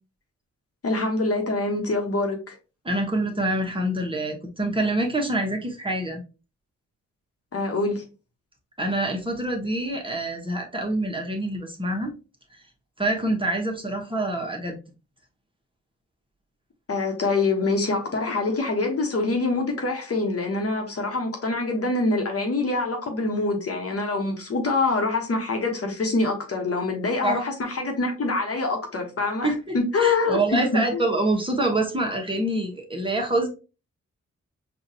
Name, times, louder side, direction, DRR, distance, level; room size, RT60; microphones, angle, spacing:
voice 1, 0.8-2.5 7.5-8.0 16.9-31.0, left 3 dB, 50° left, 1.3 m, -25 dB
voice 2, 2.8-6.2 8.8-12.1 13.0-14.8 27.2-27.4 29.4-33.5, right 1 dB, 15° right, 1.2 m, -26 dB
4.8 x 2.6 x 2.8 m
cardioid pair, 55°, 30 cm